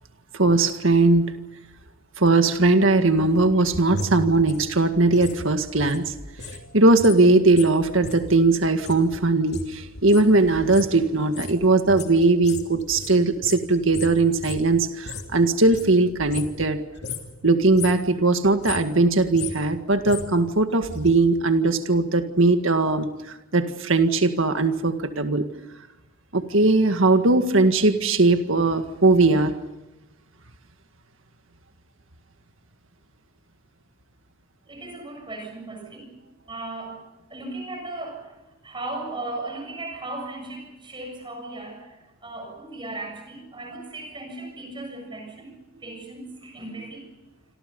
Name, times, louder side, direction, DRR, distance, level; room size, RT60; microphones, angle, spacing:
voice 1, 0.4-1.3 2.2-6.1 6.7-16.8 17.4-23.1 23.5-25.5 26.3-29.5, right 2 dB, 65° right, 7 dB, 1.9 m, -19 dB
sound 1, 3.1-6.6 6.9-15.4 15.6-16.7 17.0-17.3 17.6-18.1 18.4-21.1 21.4-21.5, left 2 dB, 50° left, 3.3 m, -36 dB
voice 2, 34.7-36.1 36.5-37.0 37.3-38.4 38.6-45.5 45.8-47.1, right 2 dB, 25° right, 3 dB, 7.1 m, -36 dB
27.5 x 27.0 x 5.4 m, 1.0 s
head